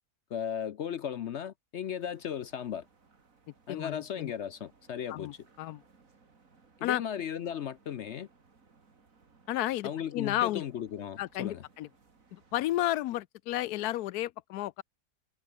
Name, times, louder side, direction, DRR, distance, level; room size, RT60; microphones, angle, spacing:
voice 1, 0.3-2.8 3.7-5.3 6.8-8.3 9.8-11.6, left 9 dB, 60° left, 0.8 m, -36 dB
sound 1, 1.8-12.5, right 4 dB, 60° right, 2.9 m, -64 dB
voice 2, 3.7-4.3 5.1-5.8 6.8-7.0 9.5-10.6 11.2-11.9 12.3-14.8, left 15 dB, 85° left, 1.1 m, -32 dB
omnidirectional pair, 1.6 m